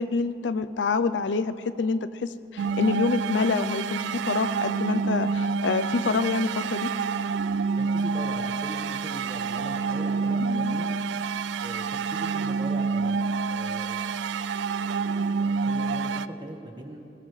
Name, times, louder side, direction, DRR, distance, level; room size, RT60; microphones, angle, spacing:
voice 1, 0.0-6.9 10.5-10.7, left 4 dB, 85° left, 12 dB, 0.5 m, -27 dB
sound 1, 2.6-16.3, right 5 dB, 80° right, 0.3 m, -28 dB
voice 2, 7.8-11.0 11.6-14.1 14.9-17.0, right 1 dB, 25° right, 2 dB, 1.5 m, -41 dB
20.5 x 19.5 x 3.3 m, 2.6 s
head